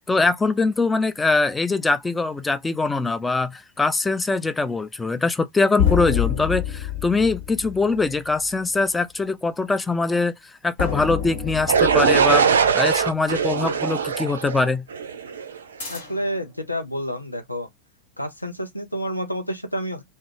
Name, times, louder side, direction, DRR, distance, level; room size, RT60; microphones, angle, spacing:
voice 1, 0.1-10.3 10.6-14.8, left 3 dB, 10° left, 0.3 m, -22 dB
sound 1, 5.8-8.6 10.8-13.4 15.8-16.4, left 9 dB, 60° left, 1.2 m, -28 dB
sound 2, 11.7-15.6, right 6 dB, 70° right, 0.3 m, -21 dB
voice 2, 15.9-17.7 18.2-20.0, equal, 85° left, 0.5 m, -29 dB
2.3 x 2.1 x 3.2 m
figure-of-eight pair, 90°, 0 cm